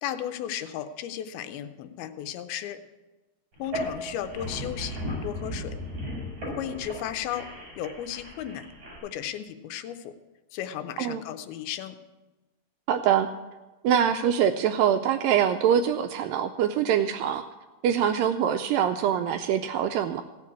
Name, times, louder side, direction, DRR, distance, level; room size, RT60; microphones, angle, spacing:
voice 1, 0.0-2.8 3.6-5.0 5.2-5.7 6.5-7.5 7.8-8.7 9.0-10.1 10.5-12.0, left 10 dB, 80° left, 9 dB, 2.6 m, -34 dB
sound 1, 3.6-9.0, equal, 30° right, 5.6 m, -36 dB
voice 2, 12.9-13.3 13.8-17.4 17.8-20.2, right 9 dB, 85° right, 7 dB, 2.0 m, -24 dB
15.5 x 6.5 x 8.3 m, 1.1 s
omnidirectional pair, 4.4 m